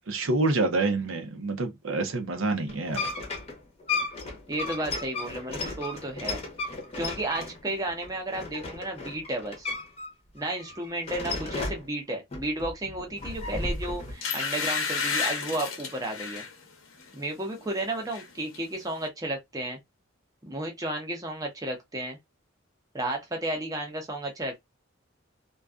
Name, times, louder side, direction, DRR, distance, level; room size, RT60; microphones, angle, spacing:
voice 1, 0.1-3.1, right 2 dB, 75° right, 0.6 m, -27 dB
sound 1, 2.7-10.1 10.4-11.9 12.3-14.1, left 3 dB, 30° left, 0.7 m, -34 dB
voice 2, 4.5-9.7 10.3-16.4 17.1-19.8 20.4-22.2 22.9-24.6, right 1 dB, 15° right, 0.6 m, -33 dB
sound 2, 13.5-13.7 14.2-16.5 17.0-17.2 17.5-18.3 18.5-18.6, left 5 dB, 75° left, 0.7 m, -31 dB
2.5 x 2.3 x 2.3 m
head